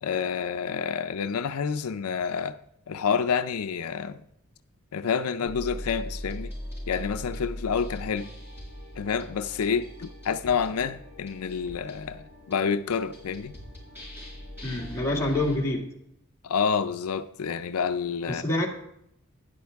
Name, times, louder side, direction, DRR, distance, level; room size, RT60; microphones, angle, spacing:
voice 1, 0.0-2.6 2.9-4.2 4.9-6.5 6.9-8.3 9.0-13.5 16.4-18.4, left 6 dB, 80° left, 0.5 m, -28 dB
sound 1, 5.4-15.6, equal, 10° right, 4.9 m, -40 dB
voice 2, 14.6-15.9 18.3-18.7, left 2 dB, 15° left, 1.9 m, -26 dB
12.5 x 10.0 x 3.5 m
head